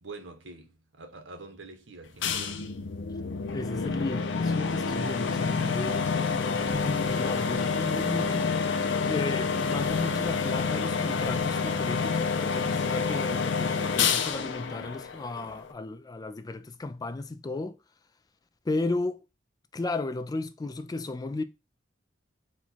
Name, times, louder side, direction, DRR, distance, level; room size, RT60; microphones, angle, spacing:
voice 1, 0.0-2.8, right 3 dB, 75° right, 1.0 m, -46 dB
sound 1, 2.2-15.7, left 5 dB, 70° left, 0.6 m, -28 dB
voice 2, 3.5-8.7 9.0-17.8 18.7-19.2 19.7-21.4, left 2 dB, 20° left, 0.3 m, -34 dB
4.3 x 2.4 x 4.2 m
head